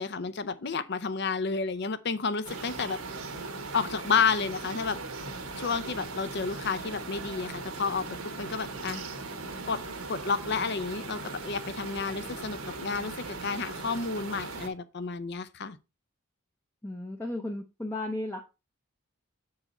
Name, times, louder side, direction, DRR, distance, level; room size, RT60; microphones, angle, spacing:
voice 1, 0.0-3.0 3.7-5.0 5.6-9.0 9.7-9.8 10.1-15.8, left 5 dB, 50° left, 0.6 m, -31 dB
sound 1, 2.4-14.7, right 3 dB, 80° right, 1.4 m, -39 dB
voice 2, 16.8-18.4, left 1 dB, 10° left, 0.6 m, -34 dB
7.9 x 4.8 x 4.1 m
head